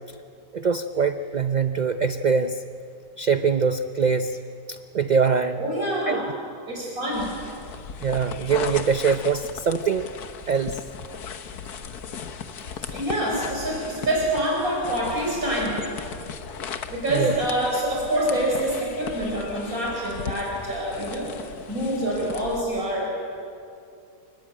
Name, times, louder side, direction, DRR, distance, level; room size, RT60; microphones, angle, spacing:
voice 1, 0.5-2.6 3.2-4.4 4.7-5.6 6.1-6.2 8.0-10.1 10.5-10.8 17.1-17.3, right 5 dB, 50° right, 9 dB, 0.5 m, -23 dB
voice 2, 5.6-6.3 6.7-7.4 12.8-15.9 16.9-21.3 21.7-23.2, right 1 dB, 65° right, -2 dB, 5.2 m, -26 dB
sound 1, 7.1-22.6, left 6 dB, 90° left, 1.7 m, -37 dB
27.5 x 19.5 x 8.8 m, 2.5 s
omnidirectional pair, 1.6 m